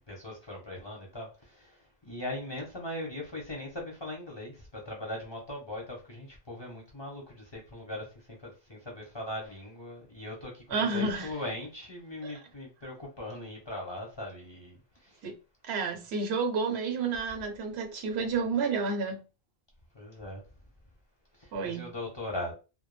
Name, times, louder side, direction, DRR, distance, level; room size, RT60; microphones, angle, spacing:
voice 1, 0.1-15.2 19.9-20.4 21.4-22.5, left 1 dB, 30° left, 0.7 m, -40 dB
voice 2, 10.7-11.3 12.2-12.3 15.2-15.3 15.7-19.2 21.5-21.9, right 4 dB, 80° right, 0.8 m, -30 dB
2.2 x 2.1 x 3.1 m
omnidirectional pair, 1.1 m